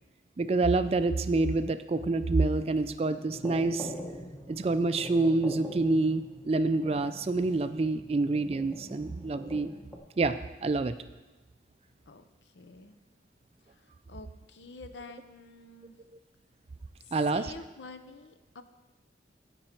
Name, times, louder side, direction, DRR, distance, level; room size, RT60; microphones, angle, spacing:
voice 1, 0.4-3.9 4.5-9.7 10.2-10.9 17.1-17.5, right 3 dB, 35° right, 11 dB, 0.3 m, -27 dB
sound 1, 3.3-10.0, equal, 10° left, 0.9 m, -44 dB
voice 2, 12.1-13.0 13.8-16.1 17.0-18.6, left 3 dB, 80° left, 9 dB, 0.7 m, -48 dB
15.5 x 5.4 x 4.4 m, 1.2 s
head